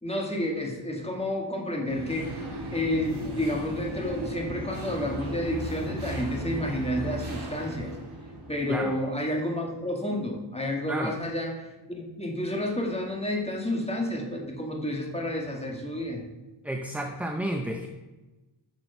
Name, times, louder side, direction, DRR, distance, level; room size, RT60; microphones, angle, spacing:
voice 1, 0.0-2.3 2.7-7.9 8.5-16.2, left 1 dB, 10° left, 0 dB, 1.8 m, -30 dB
sound 1, 1.9-9.0, right 1 dB, 55° right, 2.5 m, -36 dB
voice 2, 16.6-17.9, right 1 dB, 5° right, 4 dB, 0.6 m, -31 dB
8.9 x 6.1 x 5.5 m, 1.1 s
wide cardioid pair, 90°, 49 cm